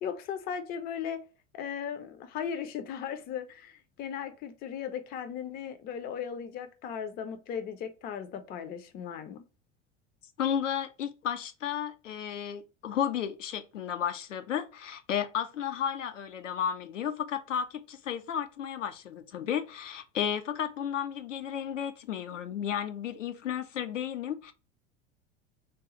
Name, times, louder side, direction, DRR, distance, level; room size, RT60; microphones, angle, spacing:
voice 1, 0.0-1.2 1.5-9.4, left 8 dB, 25° left, 0.5 m, -37 dB
voice 2, 10.4-24.5, left 9 dB, 75° left, 0.5 m, -33 dB
3.7 x 2.3 x 3.0 m
figure-of-eight pair, 75°, 37 cm